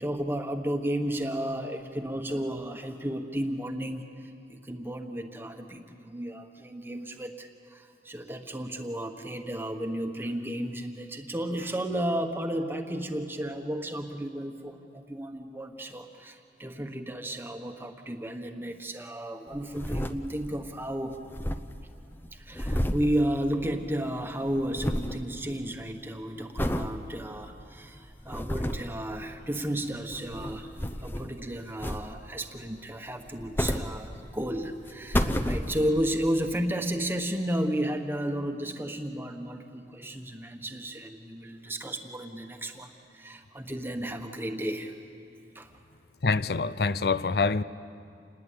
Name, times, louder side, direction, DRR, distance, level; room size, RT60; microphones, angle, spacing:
voice 1, 0.0-21.2 22.3-44.9 45.5-45.7, right 1 dB, 10° right, 1.3 m, -33 dB
sound 1, 19.5-20.7 20.9-21.0 21.2-24.0 24.2-25.2 25.7-26.0 26.6-26.9 27.5-27.6 28.1-29.0 30.0-31.4 31.8-32.4 33.2-34.5 34.9-36.1 36.6-36.7, equal, 10° left, 0.8 m, -31 dB
voice 2, 46.2-47.6, left 4 dB, 60° left, 0.6 m, -25 dB
28.0 x 20.5 x 8.7 m
head